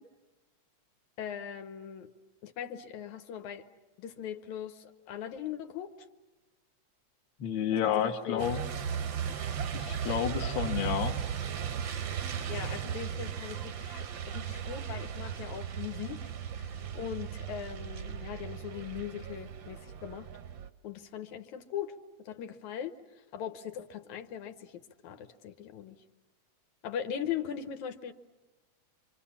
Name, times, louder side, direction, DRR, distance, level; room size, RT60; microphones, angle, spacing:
voice 1, 1.2-2.1 2.4-3.7 4.0-5.9 8.0-8.5 12.5-16.2 16.6-20.3 20.8-26.0 26.8-28.1, left 9 dB, 75° left, 8 dB, 2.4 m, -40 dB
voice 2, 7.4-8.6 9.7-11.2, left 9 dB, 50° left, 4 dB, 1.7 m, -30 dB
Truck, 8.4-20.7, right 8 dB, 60° right, 1.2 m, -36 dB
27.5 x 25.0 x 7.3 m, 1.2 s
omnidirectional pair, 3.4 m